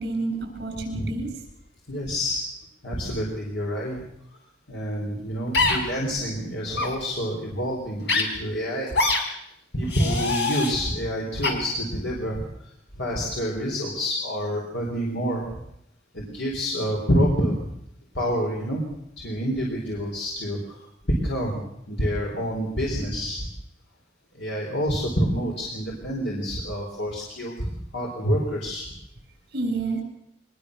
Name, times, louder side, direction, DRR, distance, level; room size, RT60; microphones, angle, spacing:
voice 1, 0.0-1.4 29.5-30.0, right 3 dB, 60° right, 3 dB, 7.4 m, -29 dB
voice 2, 1.9-2.4 2.8-4.0 4.7-8.9 9.7-12.4 13.0-15.4 16.1-17.7 18.1-18.9 19.2-21.6 21.9-23.5 24.3-28.9, equal, 85° left, -2 dB, 4.6 m, -27 dB
sound 1, 5.5-5.8 6.7-6.9 8.1-8.2 8.9-9.2 9.9-10.7 11.4-11.5, left 3 dB, 65° left, 4.9 m, -23 dB
24.0 x 21.0 x 6.9 m, 0.80 s
head